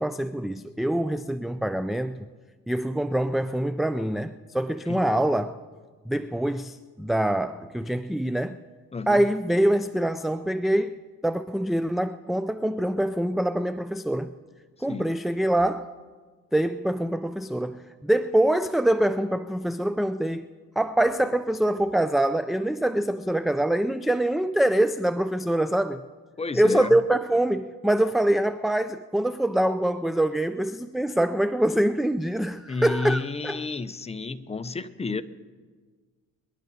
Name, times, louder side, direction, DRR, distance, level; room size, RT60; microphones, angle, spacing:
voice 1, 0.0-2.3 2.7-5.6 6.1-8.6 9.1-11.0 11.2-14.3 14.8-15.9 16.5-20.5 20.8-26.0 26.5-33.6, right 1 dB, ahead, 0.4 m, -24 dB
voice 2, 8.9-9.3 14.9-15.1 26.4-27.0 32.7-35.2, left 4 dB, 20° left, 0.7 m, -31 dB
23.0 x 11.5 x 4.2 m
cardioid pair, 90°, 30 cm